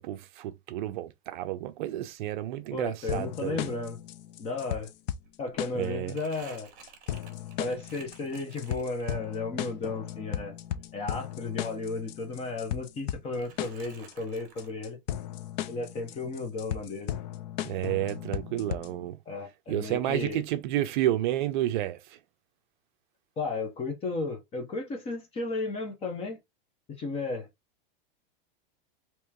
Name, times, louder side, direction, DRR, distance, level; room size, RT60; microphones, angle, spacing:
voice 1, 0.0-3.7 5.7-6.2 17.6-19.2 19.7-22.2, right 13 dB, 55° right, 0.5 m, -31 dB
voice 2, 2.7-4.0 4.4-4.9 5.4-6.7 7.6-10.6 10.9-15.0 15.7-17.1 19.3-20.4 23.4-26.4 27.0-27.5, left 3 dB, 20° left, 0.9 m, -34 dB
sound 1, 3.1-19.1, left 11 dB, 50° left, 0.4 m, -37 dB
Crumpling crinkling, 5.1-9.5 9.9-12.0 12.3-13.1 13.4-14.7, right 6 dB, 30° right, 1.4 m, -54 dB
3.1 x 3.0 x 3.4 m
supercardioid pair, 160°, 29 cm